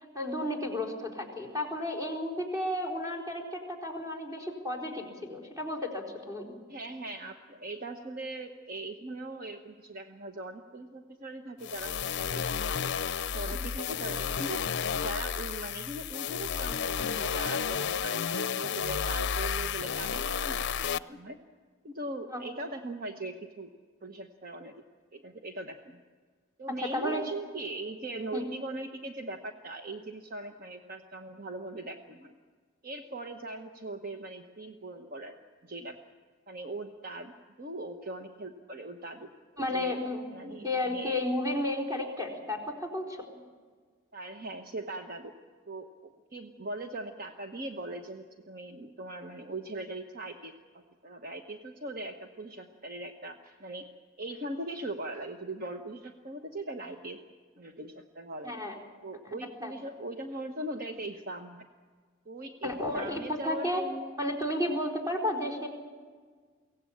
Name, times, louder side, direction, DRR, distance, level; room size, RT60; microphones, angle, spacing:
voice 1, 0.1-6.6 13.5-13.6 22.3-22.4 26.8-27.2 28.3-28.4 39.6-40.2 40.5-43.2 58.4-58.8 59.2-59.3 59.6-59.7 62.6-63.8 64.2-65.7, left 1 dB, 20° right, 0 dB, 4.2 m, -32 dB
voice 2, 6.7-12.8 13.3-21.4 21.8-23.7 24.0-24.7 25.1-26.0 26.6-32.3 32.8-35.4 35.6-36.0 36.5-39.3 39.7-40.0 40.3-41.2 44.1-45.3 45.7-50.5 51.0-53.9 54.2-57.2 57.6-58.6 59.0-61.6 62.3-64.2, right 2 dB, 45° right, 5 dB, 1.1 m, -40 dB
sound 1, 11.6-21.0, left 7 dB, 55° left, 0.6 m, -32 dB
23.5 x 17.5 x 8.6 m, 1.5 s
head